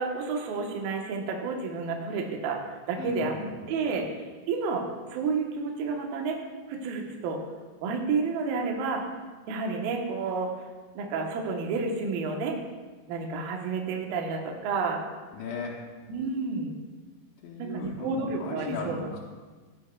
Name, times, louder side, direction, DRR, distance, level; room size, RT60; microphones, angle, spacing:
voice 1, 0.0-3.3 3.7-4.8 5.1-6.4 6.7-7.4 7.8-9.0 9.5-10.5 10.9-12.6 13.1-15.0 16.1-16.7 17.6-19.1, right 4 dB, 70° right, 1 dB, 2.3 m, -30 dB
voice 2, 3.0-3.6 15.3-15.8 17.4-19.2, left 4 dB, 75° left, -4 dB, 3.1 m, -36 dB
16.5 x 10.0 x 2.3 m, 1.4 s
omnidirectional pair, 5.6 m